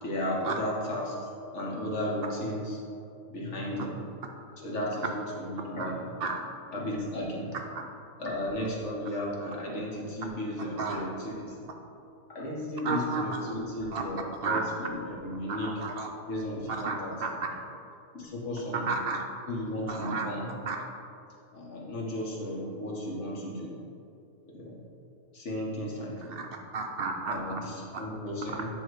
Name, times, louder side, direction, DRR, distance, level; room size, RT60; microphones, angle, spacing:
voice 1, 0.0-2.8 3.3-4.0 4.6-6.1 6.7-7.5 8.2-11.7 12.3-15.7 16.3-17.4 18.1-18.9 19.5-20.5 21.5-23.8 24.5-24.8 25.3-26.4 27.3-28.7, left 1 dB, 60° left, -3 dB, 1.5 m, -34 dB
voice 2, 12.8-13.3 13.9-14.0 14.3-14.6 15.5-16.1 16.8-17.3 18.7-19.3 19.9-20.3 20.7-20.8 26.3-26.5 26.7-27.6 27.9-28.0 28.5-28.6, right 4 dB, 65° right, 2 dB, 0.6 m, -32 dB
9.2 x 3.1 x 4.6 m, 2.6 s
omnidirectional pair, 1.4 m